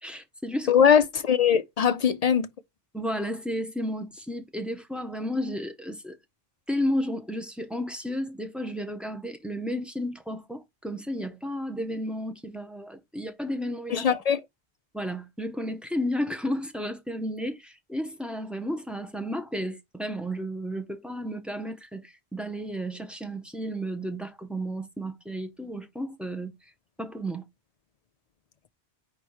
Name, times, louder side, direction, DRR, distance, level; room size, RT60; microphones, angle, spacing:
voice 1, 0.0-0.7 2.9-6.2 6.7-14.1 14.9-26.5 27.0-27.4, equal, ahead, 0.7 m, -32 dB
voice 2, 0.7-2.5 13.9-14.4, left 7 dB, 55° left, 0.4 m, -21 dB
5.1 x 4.1 x 4.7 m
omnidirectional pair, 1.1 m